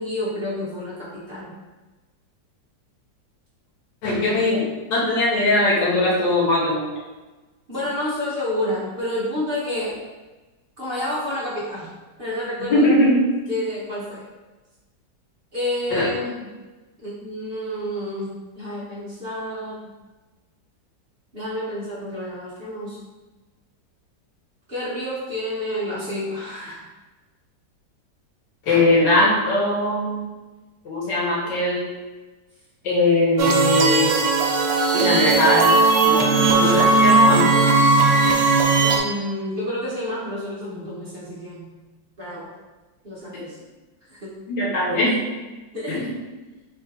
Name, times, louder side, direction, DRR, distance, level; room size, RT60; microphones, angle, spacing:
voice 1, 0.0-1.5 4.1-4.4 7.7-10.0 10.8-11.9 12.2-12.8 13.5-14.2 15.5-16.5 17.0-19.9 21.3-23.0 24.7-26.9 36.3-36.7 38.8-41.8 42.2-42.5 43.0-43.6 44.1-44.4 45.0-45.1 45.7-46.1, left 1 dB, 45° right, -9 dB, 0.9 m, -29 dB
voice 2, 4.0-4.6 4.9-6.8 12.7-13.2 15.9-16.1 28.7-30.2 30.9-31.8 32.8-34.1 34.9-35.7 36.0-37.5 44.5-45.1 45.9-46.1, left 1 dB, 85° left, -6 dB, 1.8 m, -20 dB
sound 1, 33.4-39.0, right 3 dB, 90° right, 1.3 m, -17 dB
3.6 x 2.5 x 4.0 m, 1.2 s
omnidirectional pair, 1.9 m